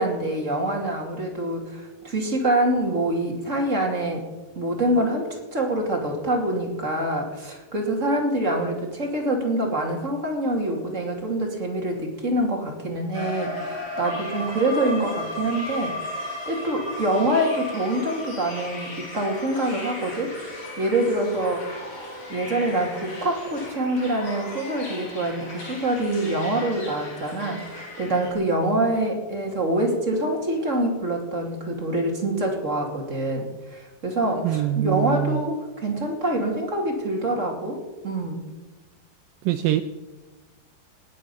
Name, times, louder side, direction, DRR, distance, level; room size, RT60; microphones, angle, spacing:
voice 1, 0.0-4.2 4.6-15.9 16.5-20.3 20.8-21.7 22.3-33.5 33.7-38.4, right 1 dB, 25° right, 0 dB, 2.1 m, -25 dB
sound 1, 13.1-28.3, left 1 dB, 40° left, 4.7 m, -36 dB
voice 2, 34.4-35.4 39.5-39.8, right 13 dB, 90° right, 10 dB, 1.9 m, -23 dB
18.5 x 9.7 x 7.0 m, 1.2 s
omnidirectional pair, 4.7 m